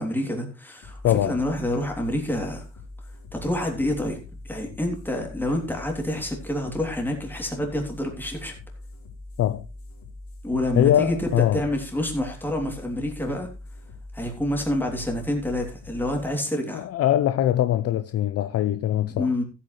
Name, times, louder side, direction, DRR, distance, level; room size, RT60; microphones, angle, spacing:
voice 1, 0.0-2.6 3.3-4.2 4.4-8.5 10.4-13.5 14.1-16.9 19.1-19.4, left 1 dB, 5° left, 3.1 m, -28 dB
sound 1, 0.8-17.9, left 2 dB, 70° left, 4.4 m, -43 dB
voice 2, 1.0-1.4 9.4-9.6 10.7-11.6 16.7-19.3, left 12 dB, 55° left, 0.7 m, -22 dB
14.5 x 8.6 x 3.3 m
cardioid pair, 135°, 29 cm